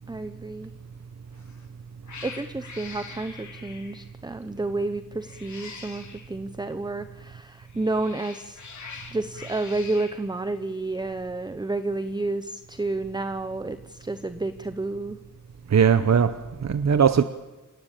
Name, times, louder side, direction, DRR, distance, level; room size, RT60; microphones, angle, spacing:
voice 1, 0.1-0.7 2.2-8.6 9.1-15.2, right 2 dB, 15° right, 11 dB, 0.7 m, -30 dB
Cat, 1.3-1.6 2.0-4.1 5.2-6.3 7.6-10.2, left 5 dB, 60° left, 3.8 m, -43 dB
voice 2, 15.7-17.2, right 7 dB, 55° right, 12 dB, 0.9 m, -20 dB
28.0 x 16.5 x 8.9 m, 1.1 s
wide cardioid pair, 160°, 33 cm